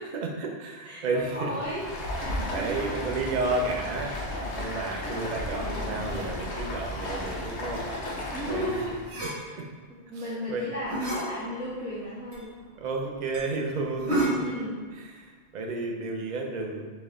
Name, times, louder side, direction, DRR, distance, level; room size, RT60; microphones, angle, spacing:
voice 1, 0.1-1.5 2.2-4.1 4.5-7.9 8.5-8.6 9.6-9.7 10.1-10.6 12.7-14.4 15.0-16.8, right 3 dB, 50° right, 0 dB, 0.6 m, -32 dB
voice 2, 0.8-1.8 2.5-3.0 4.0-4.2 4.8-6.2 8.3-8.9 9.4-9.6 9.9-12.5 14.2-14.8, equal, 5° right, -12 dB, 1.1 m, -35 dB
Stream, 1.5-9.0, left 1 dB, 75° left, 1.1 m, -34 dB
sound 1, 9.0-9.4 10.7-11.2 11.8-11.9 12.3-12.4 12.7-12.8 13.3-13.5 13.9-14.6, right 1 dB, 70° right, 1.7 m, -29 dB
4.1 x 3.4 x 3.8 m, 1.5 s
omnidirectional pair, 1.2 m